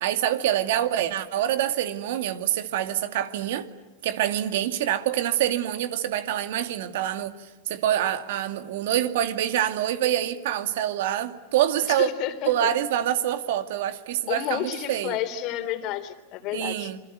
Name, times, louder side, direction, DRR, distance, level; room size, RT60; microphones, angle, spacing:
voice 1, 0.0-3.7 4.0-12.1 12.5-15.2 16.5-17.0, right 11 dB, 70° right, 9 dB, 2.3 m, -26 dB
voice 2, 11.8-12.7 14.3-16.9, left 12 dB, 50° left, 10 dB, 3.2 m, -31 dB
27.5 x 23.0 x 9.4 m, 1.1 s
hypercardioid pair, 115°, 0 cm